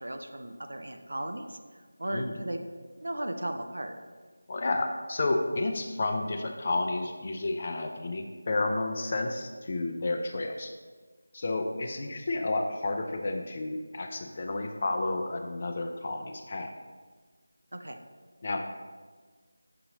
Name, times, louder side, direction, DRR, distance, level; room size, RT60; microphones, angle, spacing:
voice 1, 0.0-2.6 3.0-4.0 17.7-18.0, right 1 dB, 65° right, 5 dB, 0.5 m, -36 dB
voice 2, 2.1-2.4 4.5-10.7 11.3-16.7 18.4-18.7, left 2 dB, 35° left, 4 dB, 0.4 m, -31 dB
6.7 x 2.8 x 5.1 m, 1.4 s
figure-of-eight pair, 165°, 0 cm